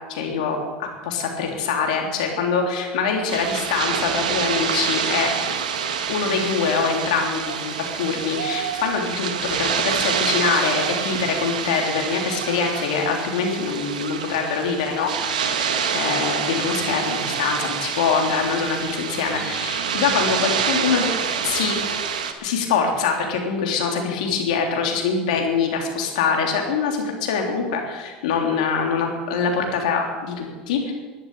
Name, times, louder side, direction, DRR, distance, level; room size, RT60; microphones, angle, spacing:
voice 1, 0.1-5.3 6.1-21.1 21.4-21.7 22.4-30.9, left 5 dB, 80° left, 2 dB, 3.4 m, -24 dB
sound 1, 3.3-22.3, right 7 dB, 90° right, 1.5 m, -26 dB
12.0 x 11.5 x 8.5 m, 1.3 s
hypercardioid pair, 85°, 4 cm